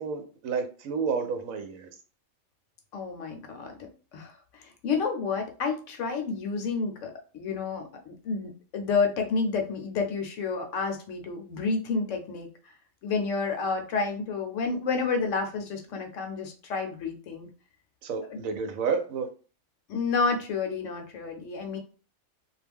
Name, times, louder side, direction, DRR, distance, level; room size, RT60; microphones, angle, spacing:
voice 1, 0.0-1.9 18.0-19.3, right 5 dB, 75° right, 6 dB, 1.0 m, -30 dB
voice 2, 2.9-3.7 4.1-12.5 13.0-17.5 18.3-18.4 19.9-21.8, left 4 dB, 70° left, 4 dB, 0.9 m, -30 dB
2.4 x 2.1 x 3.3 m, 0.37 s
omnidirectional pair, 1.4 m